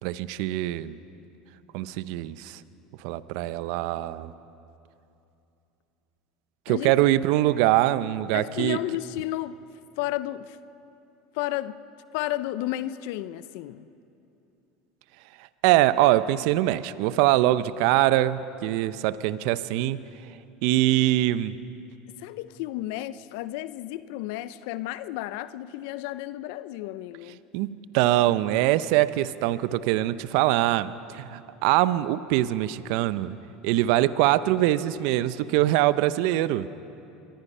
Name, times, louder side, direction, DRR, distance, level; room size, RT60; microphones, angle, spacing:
voice 1, 0.0-1.0 1.7-2.6 3.0-4.3 6.7-8.8 15.6-20.0 20.6-21.5 27.5-33.4 33.6-36.7, right 15 dB, 70° right, 0.6 m, -23 dB
voice 2, 8.3-9.6 10.0-10.6 11.3-11.8 12.1-13.9 22.1-27.4, left 15 dB, 70° left, 0.6 m, -32 dB
25.5 x 21.0 x 5.5 m
hypercardioid pair, 85°, 0 cm